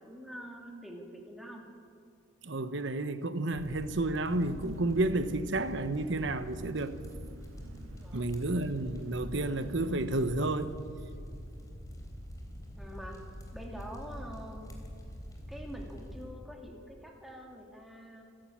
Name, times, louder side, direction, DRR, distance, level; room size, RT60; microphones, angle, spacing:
voice 1, 0.0-1.6 8.0-8.5 12.8-13.2 13.5-14.7 15.5-18.2, equal, ahead, 2.8 m, -46 dB
voice 2, 2.4-7.0 8.1-10.7, right 2 dB, 55° right, 1.0 m, -31 dB
sound 1, 3.5-16.2, equal, 15° left, 3.4 m, -45 dB
Engine, 4.3-10.7, right 1 dB, 75° right, 1.4 m, -50 dB
27.5 x 11.5 x 8.7 m
head